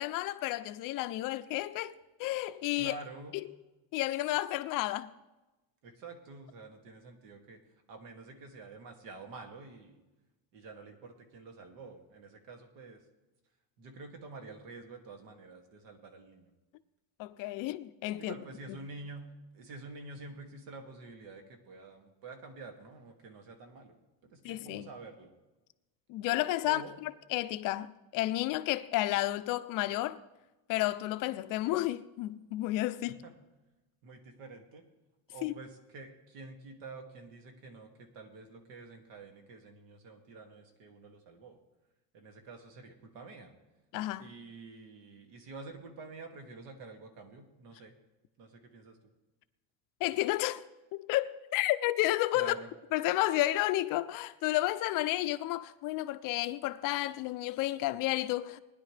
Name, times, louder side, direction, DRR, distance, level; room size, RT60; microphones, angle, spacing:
voice 1, 0.0-1.9 2.2-2.9 3.9-5.1 17.2-18.3 24.4-24.9 26.1-26.8 27.3-30.2 30.7-33.2 35.4-35.5 43.9-44.3 50.0-50.6 50.9-52.5 52.9-58.6, left 16 dB, 45° left, 0.4 m, -31 dB
voice 2, 2.8-3.4 5.8-7.6 7.9-10.0 10.5-13.0 13.8-16.5 18.2-24.0 24.3-25.3 26.6-26.9 33.1-33.3 34.0-34.8 35.3-41.6 42.1-43.5 44.2-47.9 48.4-49.1 52.3-52.7, right 3 dB, 85° right, 2.4 m, -48 dB
19.5 x 10.5 x 3.3 m
cardioid pair, 160°, 47 cm